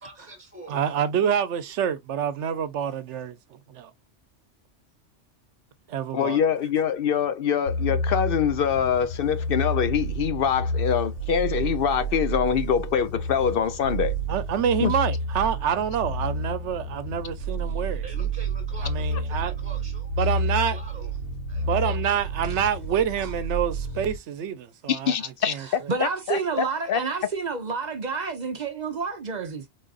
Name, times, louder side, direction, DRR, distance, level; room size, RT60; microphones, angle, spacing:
voice 1, 0.0-1.1 18.0-20.1 20.7-21.1 21.5-22.0, right 2 dB, 10° right, 1.1 m, -45 dB
voice 2, 0.7-3.9 5.9-6.4 14.3-18.0 18.8-19.5 20.2-20.8 21.6-25.1 25.5-25.7, right 8 dB, 80° right, 1.0 m, -27 dB
voice 3, 6.1-14.2 14.8-14.9 24.9-27.0, left 8 dB, 60° left, 0.7 m, -24 dB
sound 1, 7.7-24.2, right 1 dB, 80° left, 2.3 m, -30 dB
voice 4, 25.6-29.7, right 5 dB, 45° right, 0.7 m, -29 dB
4.0 x 3.8 x 2.4 m
omnidirectional pair, 1.2 m